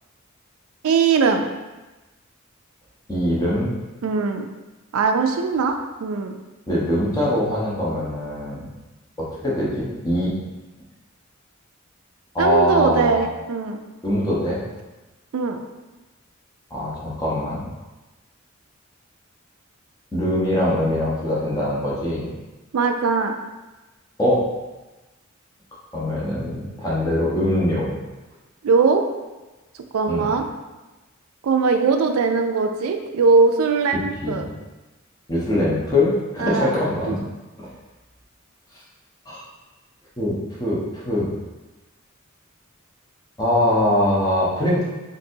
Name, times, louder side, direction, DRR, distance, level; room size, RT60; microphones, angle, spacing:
voice 1, 0.8-1.4 4.0-4.5 4.9-6.3 12.4-13.8 15.3-15.6 22.7-23.4 28.6-29.0 29.9-30.4 31.4-34.4 36.4-36.7 37.1-37.2, right 4 dB, 90° right, 5 dB, 0.4 m, -20 dB
voice 2, 3.1-3.7 6.7-8.7 9.2-10.3 12.3-13.2 14.0-14.6 16.7-17.6 20.1-22.3 24.2-24.4 25.9-28.0 30.1-30.3 34.2-34.5 35.3-37.2 37.6-37.7 39.3-39.4 40.2-41.3 43.4-44.8, left 1 dB, 20° left, -7 dB, 0.8 m, -22 dB
3.9 x 2.6 x 2.7 m, 1.1 s
head